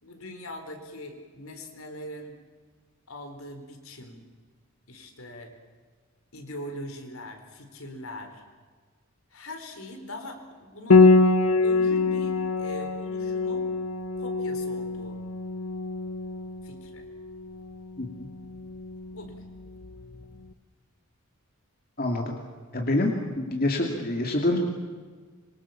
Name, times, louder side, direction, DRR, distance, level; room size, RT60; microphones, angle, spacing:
voice 1, 0.0-2.4 3.1-4.2 4.9-5.6 6.3-8.4 9.3-11.1 11.6-13.7 14.2-15.2 16.6-17.0 19.1-19.4, left 1 dB, 70° left, 5 dB, 4.4 m, -41 dB
Piano, 10.9-20.2, left 3 dB, 85° left, 1.2 m, -25 dB
voice 2, 22.0-22.4 22.7-24.6, left 2 dB, 40° left, 1 dB, 2.6 m, -26 dB
26.0 x 24.5 x 7.3 m, 1.5 s
head